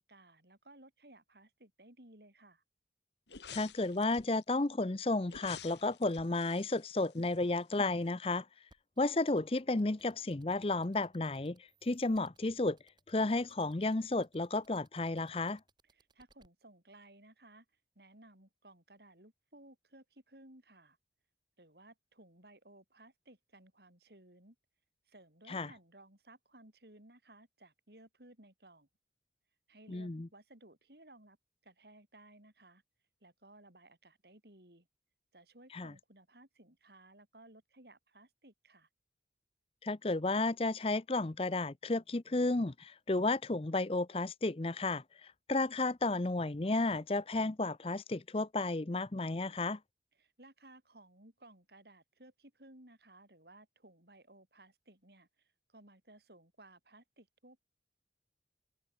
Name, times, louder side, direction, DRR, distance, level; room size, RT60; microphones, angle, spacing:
voice 1, 0.0-2.6 15.8-17.7 17.9-21.0 21.6-24.6 25.1-28.9 29.7-31.4 31.6-32.8 33.2-34.9 35.3-38.9 50.2-57.6, right 1 dB, 65° right, 6.1 m, -59 dB
sound 1, 3.3-4.4 5.3-7.7 8.1-8.2, left 7 dB, 85° left, 2.0 m, -51 dB
voice 2, 3.5-8.5 9.0-12.8 13.1-15.6 25.5-25.7 29.9-30.3 35.7-35.9 39.8-49.8, left 2 dB, 35° left, 0.7 m, -33 dB
sound 2, 8.7-16.5, right 3 dB, 25° right, 5.3 m, -68 dB
head